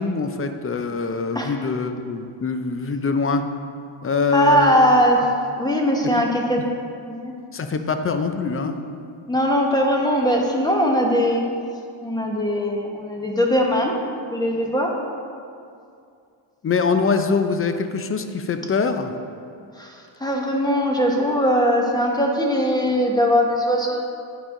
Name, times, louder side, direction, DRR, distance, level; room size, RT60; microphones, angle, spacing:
voice 1, 0.0-3.4 4.0-4.9 6.0-6.1 7.5-8.8 16.6-19.1, left 4 dB, 30° left, 7 dB, 0.5 m, -23 dB
voice 2, 4.3-5.3 5.6-6.6 7.1-7.3 9.3-11.4 12.0-14.0 14.3-15.0 19.8-24.0, equal, 10° left, 0 dB, 1.0 m, -20 dB
10.0 x 4.8 x 3.8 m, 2.4 s
cardioid pair, 95°, 49 cm